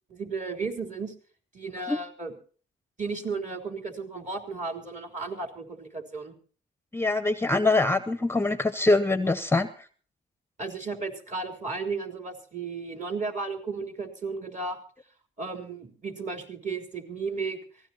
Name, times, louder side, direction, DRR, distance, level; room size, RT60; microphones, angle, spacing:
voice 1, 0.1-1.1 1.5-2.3 3.0-6.3 10.6-14.8 15.4-17.6, right 4 dB, 40° right, 5 dB, 3.6 m, -34 dB
voice 2, 6.9-9.9, left 2 dB, 10° left, 13 dB, 0.7 m, -24 dB
23.5 x 16.5 x 2.9 m, 0.42 s
cardioid pair, 90°, 20 cm